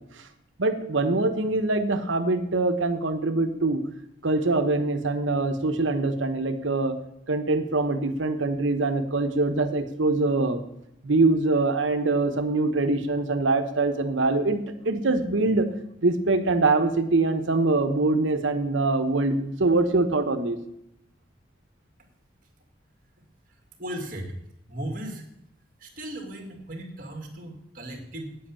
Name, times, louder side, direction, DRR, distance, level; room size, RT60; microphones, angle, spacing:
voice 1, 0.6-3.8 4.2-7.0 7.3-10.6 11.0-15.7 16.0-20.6, right 2 dB, 85° right, 8 dB, 1.1 m, -24 dB
voice 2, 23.5-24.4 24.7-25.3 25.8-28.4, right 1 dB, 45° right, 3 dB, 2.2 m, -37 dB
9.3 x 7.9 x 7.1 m, 0.79 s
head